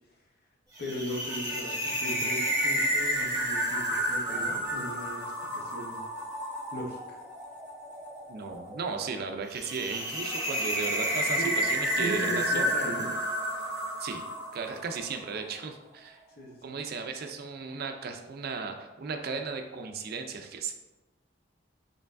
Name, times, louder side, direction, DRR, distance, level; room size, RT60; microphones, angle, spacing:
voice 1, 0.8-5.2 5.5-6.0 6.7-7.2 11.4-11.6 12.0-13.1 16.4-16.8, right 1 dB, 55° left, 0 dB, 0.8 m, -37 dB
sound 1, 0.8-15.1, equal, 15° right, 1.1 m, -31 dB
voice 2, 8.3-12.7 14.0-14.2 14.5-16.2 16.6-20.7, right 5 dB, 55° right, 5 dB, 0.4 m, -36 dB
4.5 x 3.2 x 2.5 m, 1.1 s
head